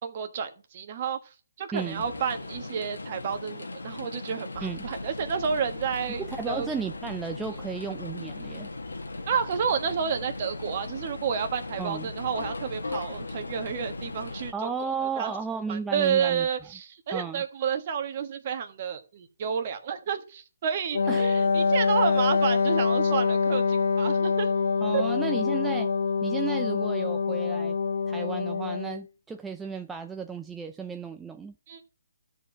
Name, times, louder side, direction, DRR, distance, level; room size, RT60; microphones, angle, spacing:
voice 1, 0.0-1.2 1.6-6.7 9.3-15.3 15.7-24.5 24.9-25.0 31.7-31.8, right 7 dB, 35° right, 1.4 m, -30 dB
sound 1, 1.7-14.5, left 2 dB, 90° left, 1.6 m, -38 dB
voice 2, 1.7-2.0 4.6-4.9 6.2-8.7 11.8-12.1 14.5-16.5 17.1-17.4 21.1-21.3 24.8-25.9 26.2-27.8 28.1-31.5, right 5 dB, 5° right, 0.4 m, -34 dB
Wind instrument woodwind instrument, 20.9-29.0, left 5 dB, 75° left, 0.6 m, -25 dB
12.5 x 4.5 x 5.9 m
hypercardioid pair, 155°, 0 cm